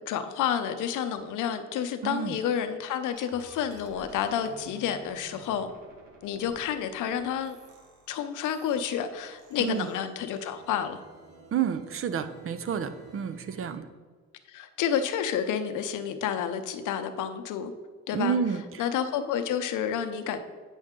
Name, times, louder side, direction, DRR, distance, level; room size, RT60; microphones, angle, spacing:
voice 1, 0.1-5.7 6.2-7.6 8.1-11.0 14.5-17.7 18.1-18.4 18.8-20.4, left 8 dB, 85° left, 9 dB, 0.7 m, -30 dB
voice 2, 2.0-2.4 9.6-9.9 11.5-13.8 18.1-18.6, right 7 dB, 45° right, 11 dB, 0.6 m, -29 dB
sound 1, 3.1-13.8, right 2 dB, 85° right, 1.3 m, -52 dB
8.9 x 5.4 x 3.7 m, 1.5 s
cardioid pair, 90°, 30 cm